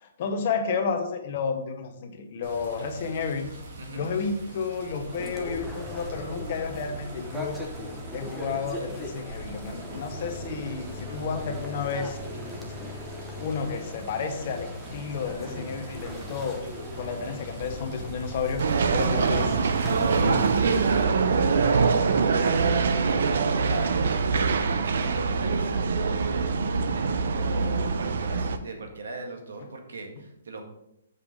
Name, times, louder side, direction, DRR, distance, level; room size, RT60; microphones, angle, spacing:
voice 1, 0.0-3.5 3.9-7.6 8.1-12.2 13.4-16.6 17.0-18.6 18.9-19.7, left 5 dB, 35° left, 6 dB, 1.0 m, -31 dB
Water, 2.4-21.0, right 1 dB, 45° right, 2.0 m, -43 dB
sound 1, 5.1-20.5, left 1 dB, 5° right, 0.8 m, -39 dB
sound 2, 18.6-28.6, right 5 dB, 60° right, 0.7 m, -24 dB
voice 2, 19.9-30.6, right 2 dB, 80° right, 4 dB, 1.7 m, -37 dB
7.0 x 5.3 x 5.1 m, 0.80 s
hypercardioid pair, 170°, 0 cm